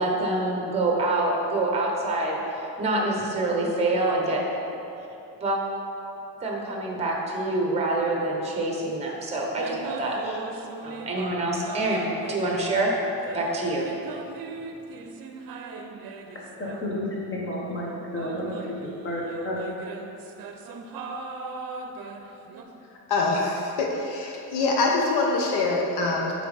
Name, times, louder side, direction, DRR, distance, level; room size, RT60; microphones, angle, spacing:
voice 1, 0.0-2.4 2.8-4.4 5.4-5.6 6.4-10.4 10.8-12.9 13.3-13.9, right 2 dB, 15° right, -1 dB, 1.0 m, -26 dB
sound 1, 9.5-11.4 11.6-17.5 18.1-22.6, right 4 dB, 60° right, 0.6 m, -40 dB
voice 2, 16.6-17.1 17.3-18.5 18.8-19.6, left 1 dB, 30° left, -4 dB, 1.4 m, -31 dB
voice 3, 23.1-26.3, left 3 dB, 75° left, -1 dB, 0.9 m, -24 dB
9.1 x 4.0 x 3.4 m, 2.9 s
cardioid pair, 125°, 40 cm